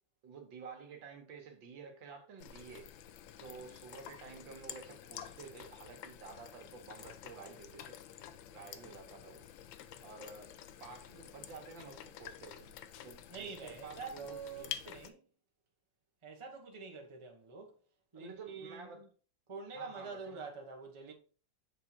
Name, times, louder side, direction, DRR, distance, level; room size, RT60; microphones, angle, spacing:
voice 1, 0.2-2.9 3.4-8.0 8.5-9.5 10.0-12.7 13.0-14.8 18.1-19.1 19.7-20.4, right 5 dB, 80° right, 1.9 m, -51 dB
sound 1, 2.4-15.1, left 10 dB, 90° left, 1.4 m, -49 dB
voice 2, 13.3-15.2 16.2-17.7 18.1-19.1 19.5-21.1, right 5 dB, 20° right, 0.9 m, -46 dB
6.8 x 3.7 x 4.4 m
omnidirectional pair, 2.0 m